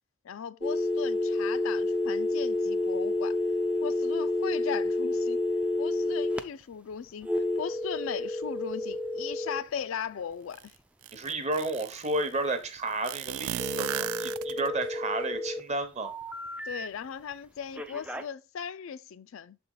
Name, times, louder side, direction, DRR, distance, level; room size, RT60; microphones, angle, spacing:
voice 1, 0.2-3.4 3.8-5.4 5.8-10.7 16.6-19.6, left 7 dB, 70° left, 0.4 m, -38 dB
sound 1, 0.6-6.4 7.2-9.6 13.6-15.6 16.0-16.9 17.8-18.2, left 2 dB, 5° right, 0.3 m, -30 dB
sound 2, 10.5-10.6 11.0-12.2 13.0-14.9, right 12 dB, 85° right, 0.3 m, -35 dB
voice 2, 11.1-16.1, right 2 dB, 30° right, 0.8 m, -32 dB
6.7 x 4.2 x 3.8 m
head